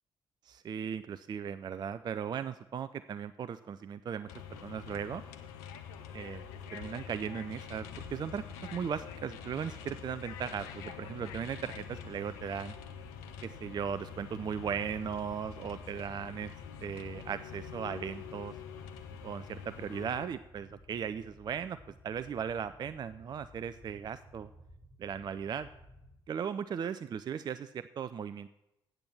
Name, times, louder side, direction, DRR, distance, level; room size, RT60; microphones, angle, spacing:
voice 1, 0.4-5.2 6.1-6.4 6.7-8.4 8.7-12.7 13.4-16.5 16.8-18.5 19.2-21.8 22.0-24.5 25.0-25.7 26.3-28.5, right 7 dB, 35° right, 13 dB, 0.4 m, -37 dB
sound 1, 4.3-20.3, left 8 dB, 70° left, 0.7 m, -46 dB
sound 2, 7.7-26.1, left 1 dB, 35° left, 4.4 m, -56 dB
8.6 x 7.8 x 6.1 m, 0.89 s
figure-of-eight pair, 40°, 12 cm